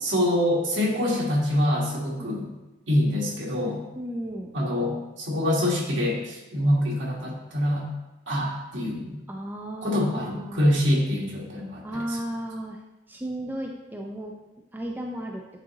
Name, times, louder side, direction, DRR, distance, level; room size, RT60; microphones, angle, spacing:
voice 1, 0.0-2.5 2.9-3.8 4.5-7.9 8.3-9.2 9.8-12.2, left 1 dB, 80° right, -3 dB, 1.4 m, -25 dB
voice 2, 3.9-4.5 9.3-10.7 11.8-12.8 13.1-14.3 14.7-15.4, right 1 dB, 10° right, 0 dB, 0.4 m, -34 dB
8.8 x 3.8 x 2.9 m, 1.0 s
head